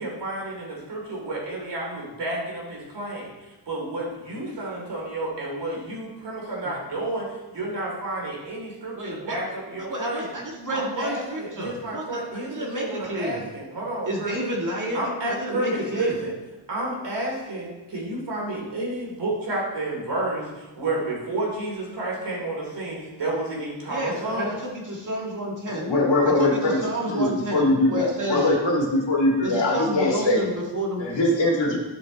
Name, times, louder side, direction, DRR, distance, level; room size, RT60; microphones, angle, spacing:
voice 1, 0.0-3.3 3.7-10.3 10.7-14.4 14.9-16.3 16.7-24.6, right 2 dB, 55° right, -3 dB, 3.2 m, -30 dB
voice 2, 9.0-9.4 9.9-12.2 12.5-13.4 14.1-15.0 15.4-16.1 23.9-24.6 24.9-25.9 26.2-28.4 29.4-31.0, right 1 dB, 40° right, -1 dB, 1.8 m, -30 dB
voice 3, 25.7-30.5 31.0-31.8, left 2 dB, 60° left, -2 dB, 2.2 m, -22 dB
10.5 x 6.0 x 4.0 m, 1.1 s
wide cardioid pair, 135°, 49 cm